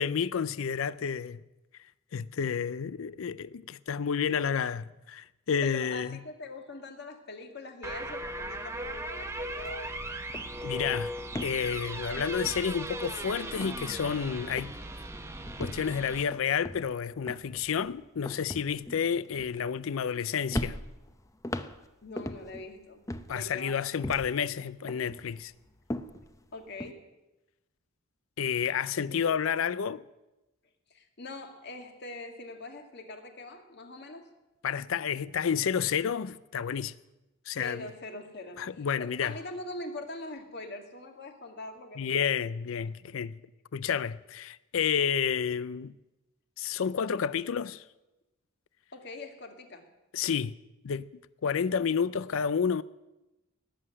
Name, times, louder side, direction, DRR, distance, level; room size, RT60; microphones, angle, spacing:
voice 1, 0.0-1.4 2.1-6.2 10.6-11.1 11.4-14.7 15.6-20.8 23.3-25.5 28.4-30.0 34.6-36.9 37.5-37.9 38.6-39.4 42.0-43.4 43.7-45.9 46.6-47.8 50.1-50.5 50.8-51.1 51.4-52.8, left 7 dB, 70° left, 0.5 m, -30 dB
voice 2, 5.6-9.9 22.0-23.0 23.3-23.8 26.5-27.1 29.1-29.3 30.9-34.3 37.6-42.3 43.2-43.3 48.9-49.9, left 2 dB, 55° left, 2.0 m, -43 dB
sound 1, 7.8-16.2, right 1 dB, 15° right, 0.9 m, -38 dB
sound 2, 9.6-9.8 10.1-13.1 13.5-14.3 14.6-15.0 15.5-20.2 20.5-22.7 23.1-24.5 24.9-26.9, left 1 dB, 15° left, 0.7 m, -40 dB
18.5 x 7.7 x 9.8 m
head